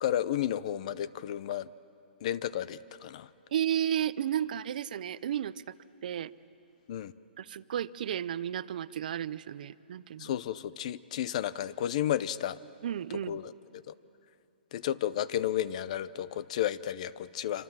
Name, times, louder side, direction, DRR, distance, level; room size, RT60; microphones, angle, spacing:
voice 1, 0.0-1.7 2.2-3.3 6.9-7.1 10.2-12.6 13.3-13.9 14.7-17.6, left 11 dB, 40° left, 18 dB, 0.6 m, -32 dB
voice 2, 3.5-5.6 6.0-6.3 7.4-10.3 12.8-13.4, right 10 dB, 50° right, 17 dB, 0.6 m, -33 dB
26.5 x 26.0 x 7.4 m, 2.6 s
hypercardioid pair, 165°, 6 cm